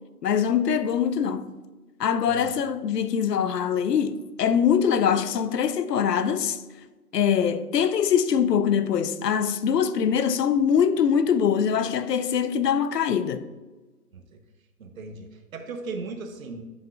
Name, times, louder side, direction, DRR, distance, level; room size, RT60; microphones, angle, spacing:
voice 1, 0.2-1.5 2.0-6.6 7.1-13.5, left 8 dB, 90° left, 0.7 m, -23 dB
voice 2, 14.8-16.6, right 3 dB, 60° right, 0.9 m, -37 dB
7.7 x 7.3 x 2.3 m
hypercardioid pair, 180°, 47 cm